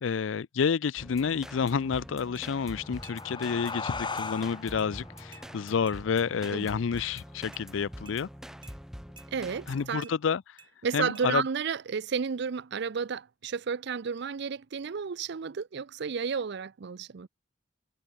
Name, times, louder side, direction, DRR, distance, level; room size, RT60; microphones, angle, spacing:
voice 1, 0.0-8.3 9.7-10.6 10.9-11.4, left 6 dB, 75° left, 0.4 m, -29 dB
sound 1, 1.0-9.9, equal, 5° right, 0.8 m, -45 dB
sound 2, 2.3-2.5 3.0-3.2 3.6-3.8 4.2-4.4 4.8-4.9 5.3-5.5 5.9-6.0 6.4-6.6 7.0-7.1 7.5-7.7 8.1-8.2 8.6-8.8 9.2-9.3 10.0-10.2 10.6-10.7 11.1-11.3, right 5 dB, 25° right, 4.9 m, -52 dB
sound 3, 2.6-7.6, left 4 dB, 25° left, 2.0 m, -40 dB
voice 2, 9.3-10.1 10.8-17.3, right 6 dB, 60° right, 0.5 m, -32 dB
head